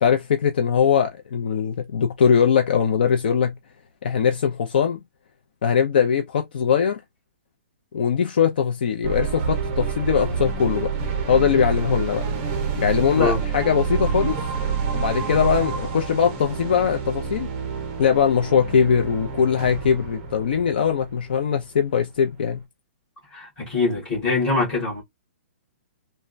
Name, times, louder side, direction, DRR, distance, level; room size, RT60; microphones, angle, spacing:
voice 1, 0.0-3.5 4.0-5.0 5.6-7.0 7.9-10.9 11.3-12.3 12.8-14.4 14.9-17.5 18.0-22.6, left 7 dB, 45° left, 0.5 m, -21 dB
sound 1, 9.0-21.8, right 5 dB, 20° right, 0.6 m, -28 dB
voice 2, 13.1-13.4 23.3-25.0, left 3 dB, 10° left, 1.5 m, -23 dB
3.3 x 2.1 x 2.4 m
hypercardioid pair, 180°, 7 cm